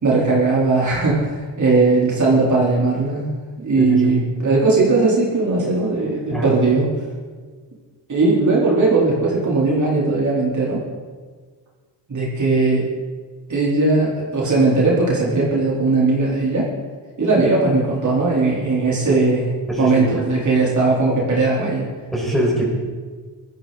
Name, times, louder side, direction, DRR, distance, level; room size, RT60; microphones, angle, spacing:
voice 1, 0.0-3.3 3.6-6.9 8.1-10.8 12.1-12.9 13.5-16.7 17.2-19.5 19.8-21.9, right 3 dB, 40° right, -5 dB, 4.4 m, -18 dB
voice 2, 3.8-4.1 6.3-6.5 19.1-19.2 19.7-20.1 22.1-22.6, right 1 dB, ahead, -5 dB, 5.7 m, -22 dB
21.5 x 14.0 x 4.3 m, 1.5 s
cardioid pair, 115°, 43 cm